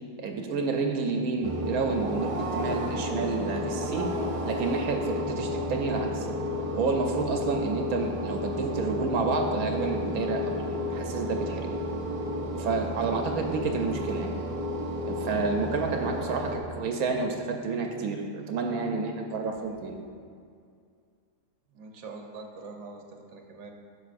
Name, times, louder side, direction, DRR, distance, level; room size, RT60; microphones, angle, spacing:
voice 1, 0.2-4.1 4.4-6.3 6.7-11.7 12.6-14.3 15.1-20.0, right 4 dB, 85° right, 3 dB, 1.1 m, -30 dB
sound 1, 1.4-16.6, left 1 dB, 40° right, 0.5 m, -32 dB
voice 2, 21.7-23.7, right 3 dB, 55° right, 2 dB, 1.1 m, -43 dB
10.5 x 6.7 x 2.5 m, 2.2 s
omnidirectional pair, 1.5 m